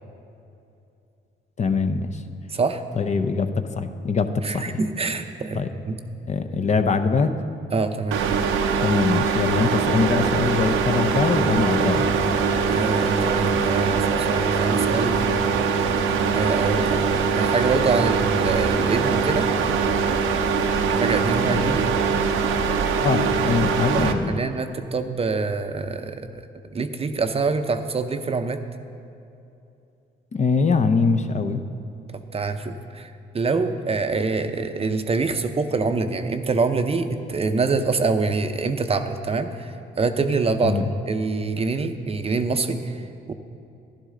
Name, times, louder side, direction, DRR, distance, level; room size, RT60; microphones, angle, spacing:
voice 1, 1.6-2.2 3.0-4.8 5.5-5.7 6.3-7.3 8.8-12.1 21.4-21.8 23.0-24.4 30.3-31.6 40.6-40.9, left 4 dB, 35° left, 8 dB, 0.6 m, -23 dB
voice 2, 2.5-2.8 4.4-5.6 5.9-6.0 7.7-8.2 12.7-15.2 16.3-17.0 17.4-19.5 20.9-21.9 23.9-26.4 26.7-28.6 32.1-43.0 43.3-43.4, right 4 dB, 30° right, 8 dB, 0.6 m, -25 dB
sound 1, 8.1-24.1, right 5 dB, 85° right, 0.7 m, -22 dB
11.5 x 11.5 x 3.8 m, 2.7 s
cardioid pair, 90°, 20 cm